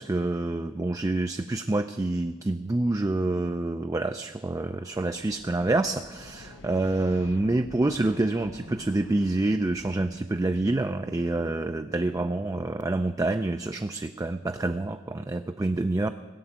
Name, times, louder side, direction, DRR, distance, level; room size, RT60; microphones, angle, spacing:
voice 1, 0.0-16.1, right 2 dB, 15° right, 7 dB, 0.4 m, -27 dB
sound 1, 4.5-10.0, left 3 dB, 65° left, 0.8 m, -49 dB
sound 2, 7.8-12.9, right 2 dB, 35° right, 0.9 m, -50 dB
17.0 x 6.9 x 8.7 m, 1.3 s
head